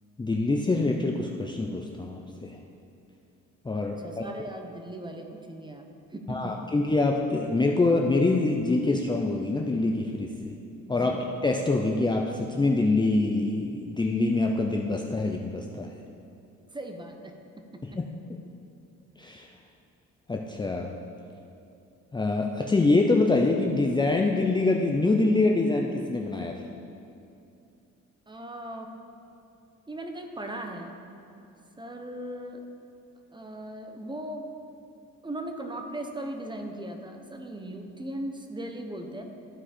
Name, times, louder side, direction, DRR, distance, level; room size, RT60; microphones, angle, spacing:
voice 1, 0.2-2.6 3.6-4.3 6.3-10.5 10.9-11.1 11.4-15.9 17.9-18.0 19.2-19.5 20.3-20.9 22.1-26.6, left 2 dB, 15° left, 1 dB, 0.5 m, -25 dB
voice 2, 3.7-6.6 10.9-11.2 16.7-18.0 28.3-29.0 29.9-31.0 31.8-32.6 33.3-34.5 35.2-39.2, right 1 dB, 15° right, 4 dB, 0.9 m, -38 dB
14.0 x 4.8 x 4.3 m, 2.7 s
cardioid pair, 90°, 30 cm